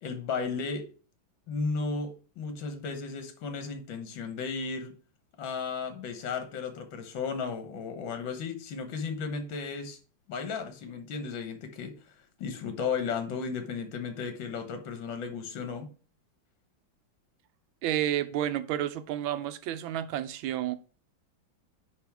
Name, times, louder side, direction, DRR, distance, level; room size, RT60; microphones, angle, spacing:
voice 1, 0.0-0.9 1.5-4.9 5.4-10.0 10.3-12.0 12.4-15.9, left 5 dB, 75° left, 1.8 m, -34 dB
voice 2, 17.8-20.8, right 11 dB, 85° right, 1.4 m, -30 dB
9.6 x 3.6 x 3.5 m
omnidirectional pair, 2.1 m